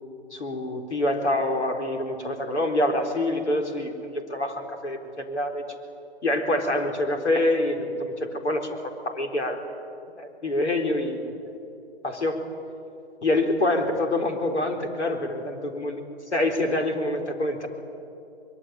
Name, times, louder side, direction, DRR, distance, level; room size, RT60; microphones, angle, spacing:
voice 1, 0.3-5.6 6.2-9.6 10.2-11.5 12.0-12.4 13.2-16.0 16.3-17.7, left 1 dB, 75° left, 4 dB, 4.3 m, -26 dB
24.0 x 22.5 x 9.1 m, 2.7 s
figure-of-eight pair, 135°, 34 cm